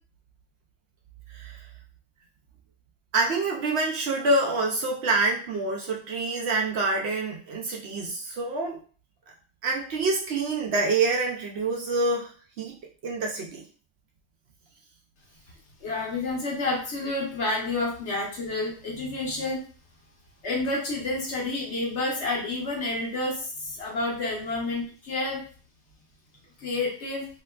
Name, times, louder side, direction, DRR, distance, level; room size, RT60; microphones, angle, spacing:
voice 1, 1.3-1.6 3.1-8.8 9.6-12.3 12.6-12.8 13.0-13.6, right 3 dB, 65° right, -1 dB, 0.8 m, -26 dB
voice 2, 15.8-19.6 20.4-25.4 26.6-27.3, left 2 dB, 60° left, -2 dB, 1.2 m, -29 dB
3.3 x 2.9 x 2.3 m, 0.41 s
omnidirectional pair, 1.3 m